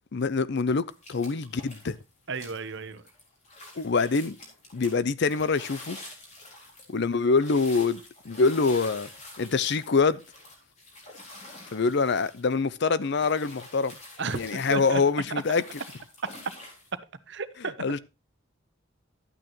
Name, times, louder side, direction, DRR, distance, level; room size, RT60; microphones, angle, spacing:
voice 1, 0.1-2.0 3.8-4.4 4.7-6.0 6.9-9.1 9.4-10.2 11.7-14.0 14.3-15.6 17.8-18.0, left 4 dB, 55° left, 0.6 m, -25 dB
sound 1, 0.9-2.0 2.3-16.9, left 1 dB, 35° left, 4.0 m, -47 dB
voice 2, 2.3-3.0 14.2-15.0 17.3-17.7, right 4 dB, 60° right, 0.9 m, -33 dB
12.0 x 9.0 x 3.0 m
head